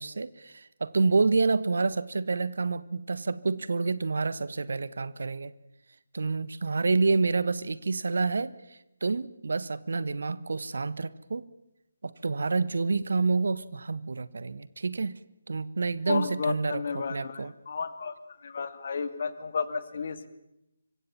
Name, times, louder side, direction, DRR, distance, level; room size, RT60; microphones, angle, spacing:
voice 1, 0.0-5.5 6.1-11.5 12.0-15.2 15.5-17.5, right 4 dB, 60° right, 17 dB, 1.3 m, -28 dB
voice 2, 16.1-18.2 18.4-20.3, left 5 dB, 45° left, 11 dB, 2.4 m, -32 dB
26.0 x 24.0 x 7.2 m, 0.88 s
figure-of-eight pair, 150°, 0 cm